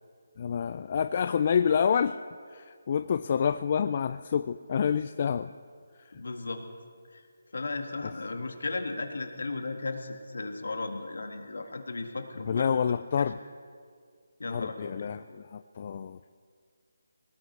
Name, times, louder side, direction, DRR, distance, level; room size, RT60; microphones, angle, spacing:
voice 1, 0.4-2.2 2.5-5.5 12.5-13.4 14.5-16.2, left 7 dB, 40° left, 11 dB, 0.4 m, -28 dB
voice 2, 6.1-6.6 7.1-7.2 7.5-12.8 13.2-13.3 14.4-15.1, left 3 dB, 70° left, 5 dB, 1.8 m, -35 dB
21.0 x 18.5 x 3.3 m, 2.1 s
figure-of-eight pair, 155°, 0 cm